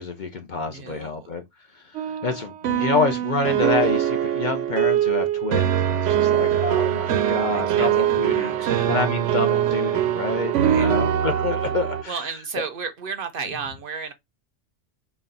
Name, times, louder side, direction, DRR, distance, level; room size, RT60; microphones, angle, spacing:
voice 1, 0.0-1.4 1.7-12.2, left 4 dB, 55° left, 0.6 m, -28 dB
voice 2, 0.5-1.3 7.5-9.0 10.6-10.9 12.1-14.1, right 5 dB, 60° right, 0.6 m, -34 dB
sound 1, 1.9-12.0, right 10 dB, 90° right, 0.9 m, -22 dB
4.1 x 2.3 x 3.7 m
omnidirectional pair, 1.2 m